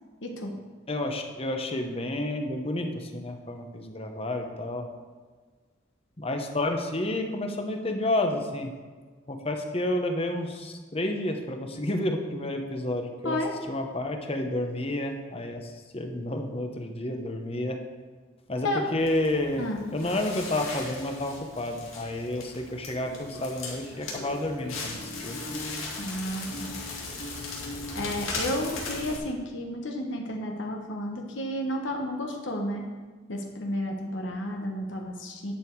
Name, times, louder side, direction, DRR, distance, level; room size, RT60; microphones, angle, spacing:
voice 1, 0.2-0.6 13.2-13.5 18.6-18.8 19.6-19.9 25.9-26.7 27.9-32.9 33.3-35.5, left 1 dB, 65° left, 2 dB, 1.1 m, -32 dB
voice 2, 0.9-4.9 6.2-8.7 9.3-13.4 13.7-17.8 18.5-19.7 19.9-25.4, left 1 dB, 30° left, 4 dB, 0.9 m, -30 dB
Crackle, 19.0-29.2, left 3 dB, 85° left, 2.2 m, -37 dB
10.0 x 7.0 x 4.6 m, 1.4 s
head